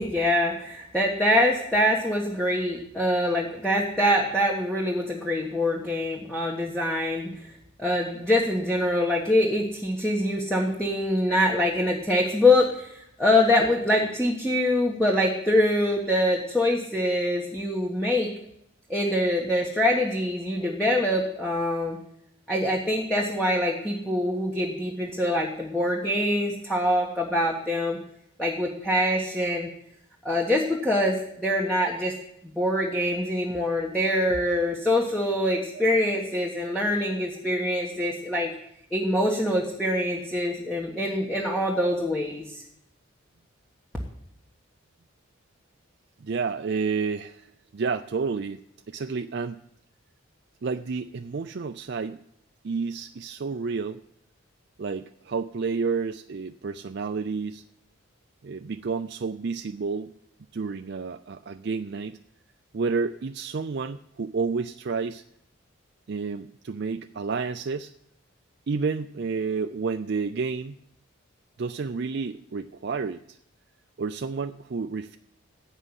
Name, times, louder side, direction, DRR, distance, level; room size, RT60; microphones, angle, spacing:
voice 1, 0.0-7.3 7.8-18.3 18.9-22.0 22.5-28.0 28.4-29.7 30.2-32.1 32.4-38.5 38.9-42.6, left 1 dB, 5° left, -2 dB, 1.4 m, -24 dB
voice 2, 46.2-49.6 50.6-52.2 52.6-54.0 54.8-57.6 58.4-60.1 60.5-62.2 62.7-65.2 66.1-67.9 68.7-70.8 71.6-73.4 74.0-75.2, right 5 dB, 50° right, 7 dB, 0.4 m, -30 dB
15.5 x 5.6 x 9.8 m, 0.76 s
head